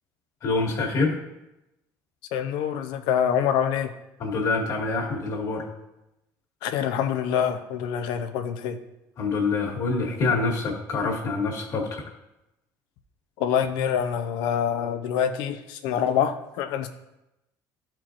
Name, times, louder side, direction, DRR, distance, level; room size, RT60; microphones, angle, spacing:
voice 1, 0.4-1.2 4.2-5.7 9.2-12.0, left 3 dB, 45° left, -1 dB, 1.7 m, -26 dB
voice 2, 2.3-3.9 6.6-8.8 13.4-16.9, left 8 dB, 80° left, 9 dB, 0.6 m, -25 dB
13.0 x 4.5 x 2.5 m, 0.91 s
cardioid pair, 140°, 8 cm